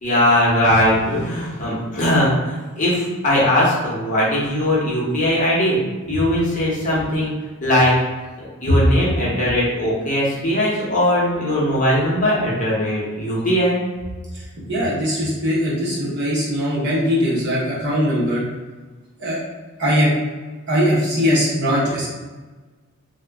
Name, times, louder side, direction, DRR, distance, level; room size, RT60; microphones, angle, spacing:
voice 1, 0.0-5.8 6.1-7.3 7.6-7.9 8.6-13.8, left 1 dB, 35° left, -7 dB, 0.9 m, -19 dB
voice 2, 14.7-18.4 19.2-19.4 19.8-20.1 20.7-22.1, equal, 50° right, -7 dB, 1.0 m, -20 dB
2.9 x 2.3 x 3.5 m, 1.3 s
head